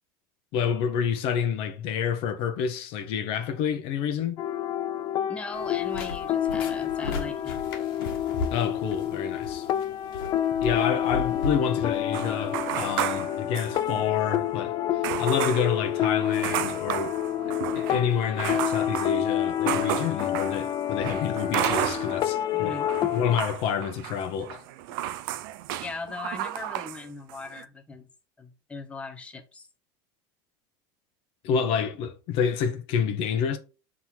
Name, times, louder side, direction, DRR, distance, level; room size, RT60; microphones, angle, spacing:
voice 1, 0.5-4.4 8.5-9.7 10.6-17.2 17.5-24.6 31.4-33.6, left 7 dB, 55° left, 0.9 m, -28 dB
sound 1, 4.4-23.4, left 11 dB, 35° left, 0.4 m, -28 dB
voice 2, 5.3-7.6 7.9-8.0 22.5-23.2 25.8-28.1 28.4-29.7, left 3 dB, 10° left, 0.8 m, -39 dB
sound 2, 5.5-13.0, left 4 dB, 90° left, 1.6 m, -37 dB
sound 3, 12.1-14.2 14.5-14.6 15.0-22.4 22.7-27.0 27.3-27.6, right 13 dB, 70° right, 0.5 m, -33 dB
5.7 x 3.8 x 4.5 m
supercardioid pair, 135°, 11 cm